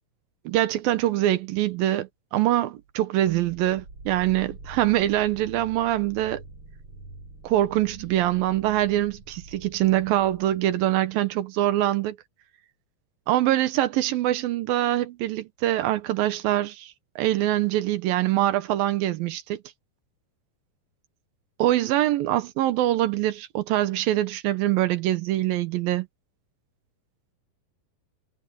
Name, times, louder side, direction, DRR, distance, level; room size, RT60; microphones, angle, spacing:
voice 1, 0.5-6.4 7.4-12.2 13.3-19.6 21.6-26.1, right 14 dB, 85° right, 2.9 m, -24 dB
sound 1, 3.3-11.1, right 2 dB, 40° right, 6.9 m, -46 dB
omnidirectional pair, 4.0 m